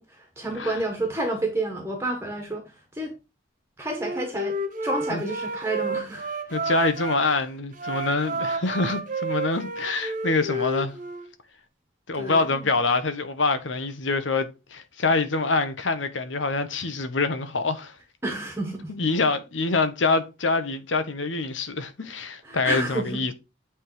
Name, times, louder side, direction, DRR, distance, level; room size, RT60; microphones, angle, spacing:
voice 1, 0.0-3.1 3.8-4.6 4.8-6.2 6.6-6.7 12.1-12.7 18.2-19.1 22.4-23.2, right 2 dB, 15° right, 1.4 m, -30 dB
Wind instrument woodwind instrument, 3.9-7.2 7.7-11.3, right 2 dB, 45° right, 1.2 m, -30 dB
voice 2, 6.5-10.9 12.1-17.9 18.9-23.3, left 3 dB, 85° left, 1.1 m, -25 dB
8.6 x 3.7 x 4.8 m
head